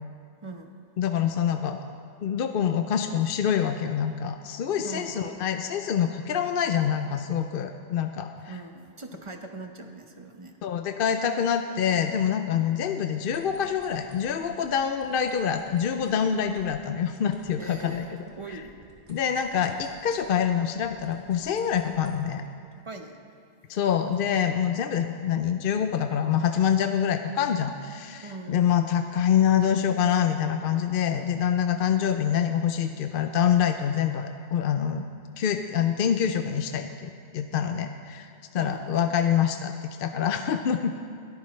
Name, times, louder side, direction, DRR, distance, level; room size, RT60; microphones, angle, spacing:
voice 1, 0.4-0.7 4.8-5.4 8.5-10.7 17.6-18.7 22.9-23.2 28.2-28.6 38.6-38.8, right 3 dB, 30° right, 4 dB, 0.9 m, -41 dB
voice 2, 1.0-1.8 2.2-8.5 10.6-18.6 19.1-22.4 23.7-35.0 35.4-40.9, left 8 dB, 60° left, 7 dB, 0.7 m, -26 dB
sound 1, 13.2-14.7 15.0-20.5 20.7-22.2, right 1 dB, 45° right, 2.8 m, -55 dB
21.5 x 13.5 x 3.2 m, 2.3 s
omnidirectional pair, 1.2 m